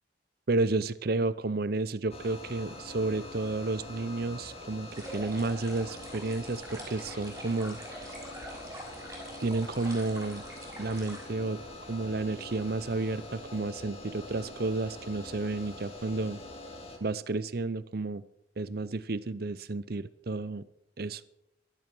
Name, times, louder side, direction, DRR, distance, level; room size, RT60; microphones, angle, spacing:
voice 1, 0.5-7.8 9.4-10.4 10.8-11.6 11.9-16.4 17.0-18.2 18.6-20.6 21.0-21.2, right 3 dB, 55° right, 16 dB, 0.7 m, -31 dB
sound 1, 2.1-17.0, left 2 dB, 35° left, 2.3 m, -45 dB
sound 2, 4.9-11.2, right 1 dB, 15° right, 5.8 m, -45 dB
16.0 x 12.5 x 6.1 m, 0.82 s
head